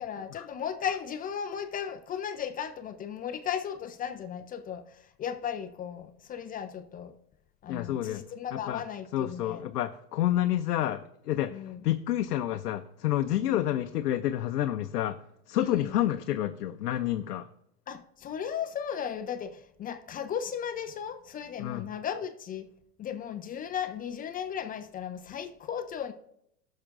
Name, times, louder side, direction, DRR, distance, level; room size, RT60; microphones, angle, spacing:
voice 1, 0.0-4.8 5.2-7.1 7.6-9.6 11.5-11.8 13.4-13.7 15.6-15.9 17.9-22.7 23.0-26.1, left 8 dB, 20° left, 0.4 m, -36 dB
voice 2, 7.7-8.2 8.5-8.8 9.1-15.2 15.5-17.5 21.6-21.8, left 12 dB, 90° left, 0.6 m, -29 dB
18.5 x 6.5 x 2.5 m
hypercardioid pair, 100°, 46 cm